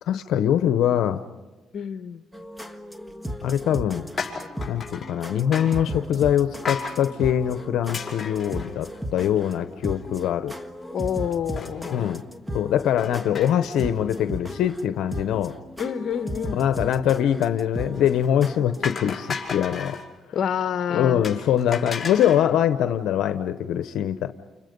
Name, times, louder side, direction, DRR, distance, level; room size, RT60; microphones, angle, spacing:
voice 1, 0.1-1.2 3.4-4.0 4.7-10.5 11.9-12.2 12.5-15.5 16.5-20.0 20.9-24.3, left 10 dB, 80° left, 9 dB, 0.8 m, -23 dB
voice 2, 1.7-2.2 10.9-12.2 15.8-16.6 20.3-21.2, left 8 dB, 60° left, 11 dB, 1.1 m, -28 dB
sound 1, 2.3-18.9, equal, 5° right, 1.6 m, -36 dB
sound 2, 4.2-5.2 5.5-5.9 6.6-7.0 7.9-9.2 9.6-9.7 10.0-10.1 11.6-12.1 13.0-13.8 14.1-14.4 17.9-18.3 18.8-20.1 21.2-22.5, left 5 dB, 30° left, 5.8 m, -33 dB
30.0 x 29.5 x 5.3 m, 1.1 s
cardioid pair, 90°, 0 cm